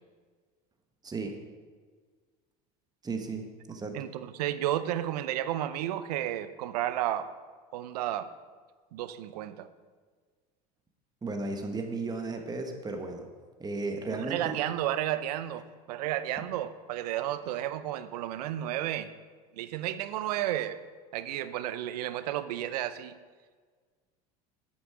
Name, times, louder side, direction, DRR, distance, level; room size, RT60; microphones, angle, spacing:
voice 1, 1.0-1.4 3.0-4.0 11.2-13.3 13.6-14.6, right 3 dB, 20° right, 4 dB, 1.3 m, -34 dB
voice 2, 3.9-7.3 7.7-8.3 8.9-9.7 14.1-19.1 19.5-20.8 21.1-23.1, right 12 dB, 85° right, 14 dB, 0.6 m, -32 dB
8.8 x 8.4 x 4.9 m, 1.5 s
supercardioid pair, 90°, 20 cm